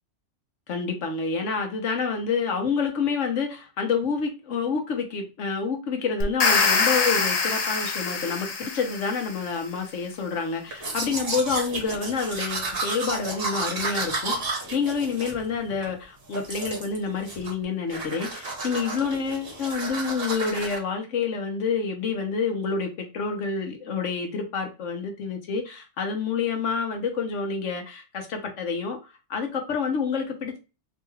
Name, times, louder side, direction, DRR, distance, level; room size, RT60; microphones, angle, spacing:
voice 1, 0.7-29.0 29.3-30.6, left 5 dB, 90° left, 1.3 m, -28 dB
sound 1, 6.2-9.4, left 4 dB, 45° left, 0.6 m, -24 dB
Domestic sounds home sounds, 10.7-15.9 16.3-17.0 17.3-17.6 17.9-20.8, right 3 dB, 55° right, 1.4 m, -32 dB
3.9 x 2.3 x 3.1 m
omnidirectional pair, 1.2 m